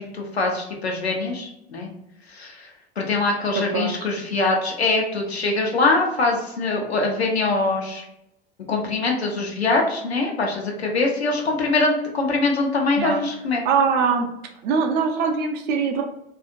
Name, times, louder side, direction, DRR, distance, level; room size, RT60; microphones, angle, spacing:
voice 1, 0.0-1.9 2.3-8.0 8.7-13.6, left 3 dB, 80° left, 0 dB, 0.8 m, -23 dB
voice 2, 3.6-3.9 13.0-13.2 13.6-14.3 14.6-16.0, right 5 dB, 30° right, 3 dB, 0.4 m, -22 dB
2.7 x 2.4 x 2.5 m, 0.81 s
figure-of-eight pair, 85°, 32 cm